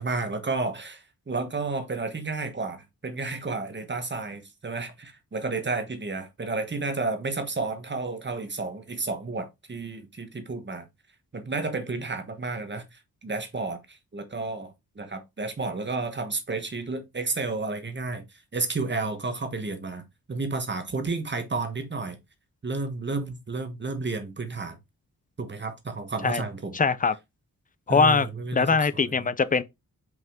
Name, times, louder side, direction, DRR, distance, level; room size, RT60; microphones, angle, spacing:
voice 1, 0.0-10.9 11.3-18.2 18.5-22.2 22.6-24.8 25.4-26.8 27.9-29.3, right 3 dB, 30° right, 1.3 m, -31 dB
voice 2, 26.7-27.2 27.9-28.3 28.5-29.6, left 5 dB, 25° left, 0.5 m, -22 dB
5.7 x 5.3 x 3.6 m
wide cardioid pair, 145°, 35 cm